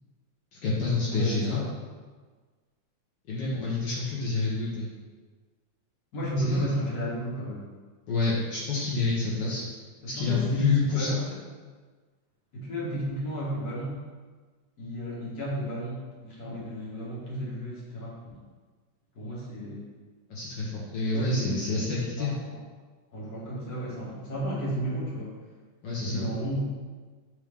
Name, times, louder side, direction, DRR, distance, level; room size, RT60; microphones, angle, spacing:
voice 1, 0.5-1.6 3.3-4.9 6.4-6.6 8.1-9.6 10.1-11.2 20.3-22.4 25.8-26.3, left 3 dB, 75° left, -6 dB, 1.0 m, -28 dB
voice 2, 1.1-1.6 6.1-7.7 10.2-11.4 12.5-14.0 14.8-18.4 19.1-19.8 21.1-21.6 22.2-22.6 23.1-25.3 26.0-26.6, equal, 45° left, -6 dB, 1.4 m, -32 dB
8.6 x 3.3 x 3.5 m, 1.4 s
omnidirectional pair, 3.5 m